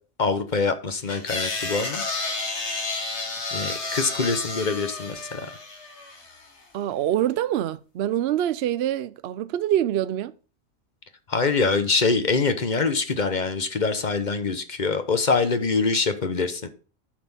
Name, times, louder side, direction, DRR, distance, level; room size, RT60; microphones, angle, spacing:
voice 1, 0.2-2.0 3.5-5.5 11.3-16.7, left 4 dB, 35° left, 1.0 m, -24 dB
sound 1, 1.1-6.4, left 3 dB, 55° left, 1.9 m, -31 dB
voice 2, 6.7-10.3, right 11 dB, 65° right, 0.7 m, -25 dB
8.9 x 4.2 x 7.0 m
omnidirectional pair, 1.4 m